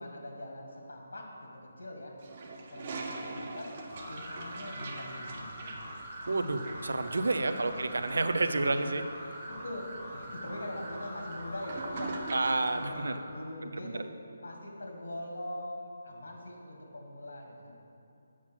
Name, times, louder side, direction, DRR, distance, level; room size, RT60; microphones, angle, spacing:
voice 1, 0.0-1.5 1.8-2.1 2.7-3.8 4.1-5.8 7.4-7.7 9.5-9.8 10.1-12.1 12.4-14.0 14.4-17.8, left 1 dB, 85° left, 0 dB, 1.8 m, -42 dB
Toilet flush, 2.2-12.9, right 2 dB, 30° right, 0.7 m, -44 dB
sound 1, 3.9-13.2, equal, 10° right, 1.8 m, -44 dB
voice 2, 6.3-9.0 12.3-13.2 13.6-14.0, right 3 dB, 80° right, 9 dB, 0.6 m, -30 dB
7.4 x 5.9 x 6.0 m, 2.6 s
hypercardioid pair, 175°, 0 cm